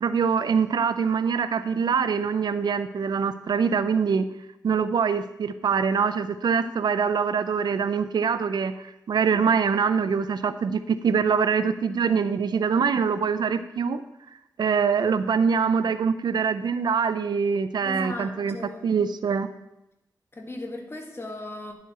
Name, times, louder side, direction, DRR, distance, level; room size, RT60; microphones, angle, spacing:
voice 1, 0.0-4.3 4.6-8.7 9.1-14.0 14.6-18.6 18.8-19.5, right 6 dB, 85° right, 12 dB, 0.5 m, -24 dB
voice 2, 17.8-18.9 20.3-21.7, left 1 dB, 35° left, 3 dB, 1.7 m, -37 dB
10.5 x 7.4 x 4.2 m, 0.90 s
cardioid pair, 60°, 7 cm